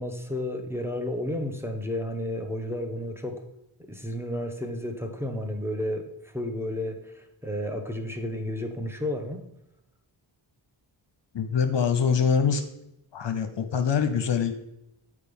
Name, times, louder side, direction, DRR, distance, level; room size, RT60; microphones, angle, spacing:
voice 1, 0.0-3.4 3.8-9.4, left 1 dB, 5° right, 4 dB, 1.4 m, -32 dB
voice 2, 11.3-12.6 13.1-14.5, left 6 dB, 60° left, 8 dB, 0.8 m, -24 dB
6.8 x 4.7 x 5.4 m, 0.85 s
cardioid pair, 45°, 49 cm